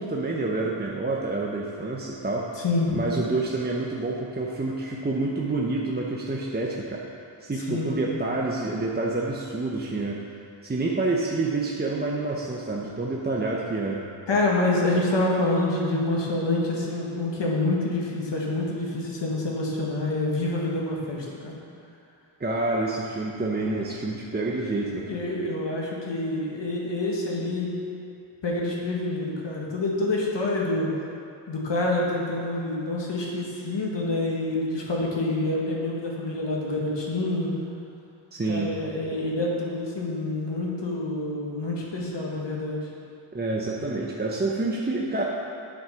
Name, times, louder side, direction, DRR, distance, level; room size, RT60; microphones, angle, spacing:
voice 1, 0.0-2.6 2.9-7.0 7.4-10.2 10.6-14.0 22.4-25.2 38.3-38.7 43.3-45.2, right 2 dB, 20° right, -2 dB, 0.8 m, -28 dB
voice 2, 2.6-3.0 7.6-8.1 14.3-21.6 25.1-27.8 28.4-30.9 31.5-37.5 38.5-42.9, left 2 dB, 60° left, -3 dB, 1.8 m, -27 dB
8.0 x 6.1 x 5.7 m, 2.5 s
cardioid pair, 85°, 49 cm